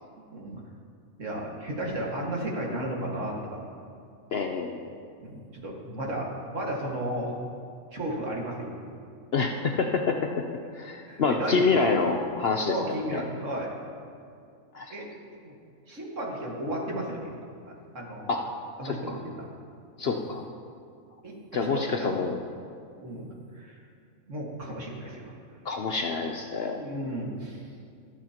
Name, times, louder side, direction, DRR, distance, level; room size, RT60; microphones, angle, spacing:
voice 1, 0.3-0.6 1.2-3.7 5.2-7.3 7.9-8.9 11.1-11.9 12.6-13.7 14.9-15.1 15.4-15.6 15.9-17.3 17.7-18.3 18.8-19.5 20.0-20.2 21.2-22.2 23.0-23.3 23.5-23.8 24.3-25.3 26.8-27.7, right 1 dB, 60° right, -2 dB, 2.1 m, -34 dB
voice 2, 4.3-4.9 9.3-10.3 10.7-12.7 13.1-13.2 14.7-14.9 18.3-18.4 18.8-19.2 20.0-20.4 21.5-22.4 25.6-26.8, left 4 dB, 55° left, 3 dB, 0.7 m, -27 dB
25.5 x 8.6 x 2.9 m, 2.4 s
omnidirectional pair, 1.5 m